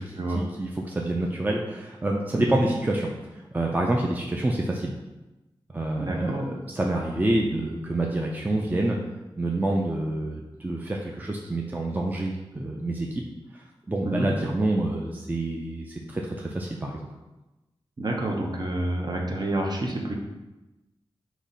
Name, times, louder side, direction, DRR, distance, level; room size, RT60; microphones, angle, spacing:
voice 1, 0.0-3.1 3.5-4.9 5.7-9.0 9.4-13.2 13.5-17.0, right 1 dB, 20° right, 0 dB, 0.5 m, -27 dB
voice 2, 6.0-6.5 14.0-14.3 18.0-20.2, right 1 dB, 45° right, 0 dB, 0.8 m, -28 dB
4.0 x 3.0 x 3.9 m, 1.0 s
cardioid pair, 60°, 10 cm